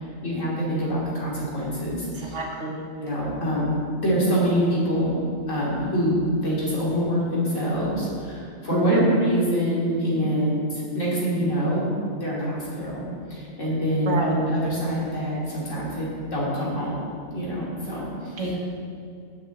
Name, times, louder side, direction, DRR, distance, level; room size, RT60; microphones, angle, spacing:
voice 1, 0.0-2.4 3.0-5.2 5.5-11.9 12.2-13.0 13.3-16.9 17.3-18.6, equal, 90° left, -6 dB, 2.9 m, -25 dB
voice 2, 2.2-2.8 8.7-9.1 14.1-14.3 18.4-18.6, right 2 dB, 75° right, 0 dB, 1.7 m, -26 dB
7.2 x 6.7 x 7.5 m, 2.4 s
omnidirectional pair, 1.3 m